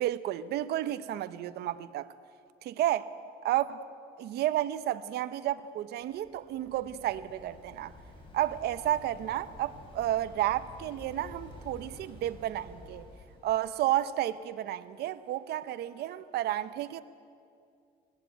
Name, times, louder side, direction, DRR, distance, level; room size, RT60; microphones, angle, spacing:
voice 1, 0.0-2.1 2.6-3.1 3.4-3.8 4.2-7.9 8.3-13.1 13.4-17.0, right 13 dB, 75° right, 0.8 m, -31 dB
Waves surf, 6.0-13.6, left 2 dB, 30° left, 6.1 m, -51 dB
21.0 x 17.5 x 9.3 m
cardioid pair, 110°, 17 cm